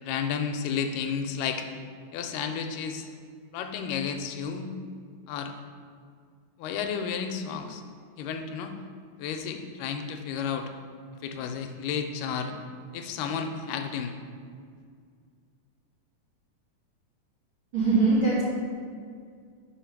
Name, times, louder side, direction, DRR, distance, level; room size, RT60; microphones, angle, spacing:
voice 1, 0.0-1.7 2.1-3.1 3.5-4.7 5.3-5.5 6.6-7.8 8.2-8.7 9.2-10.7 11.2-12.5 12.9-14.2, left 6 dB, 85° left, 5 dB, 2.1 m, -32 dB
voice 2, 17.7-18.4, right 3 dB, 55° right, -9 dB, 1.5 m, -22 dB
5.3 x 5.1 x 5.8 m, 2.1 s
omnidirectional pair, 3.8 m